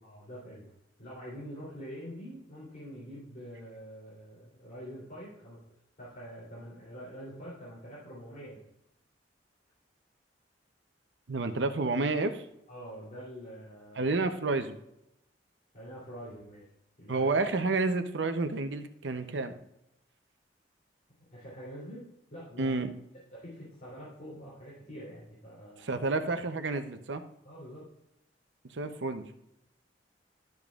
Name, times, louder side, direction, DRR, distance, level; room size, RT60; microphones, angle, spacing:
voice 1, 0.0-0.6 1.0-5.6 6.0-8.6 12.7-14.1 15.7-16.7 17.0-17.3 21.3-22.0 22.3-22.8 23.3-26.0 27.4-27.8, equal, 45° left, -8 dB, 3.1 m, -45 dB
voice 2, 11.3-12.4 14.0-14.7 17.1-19.5 22.6-22.9 25.8-27.2 28.7-29.3, right 3 dB, 75° right, 8 dB, 0.7 m, -30 dB
12.0 x 7.1 x 2.4 m, 0.84 s
head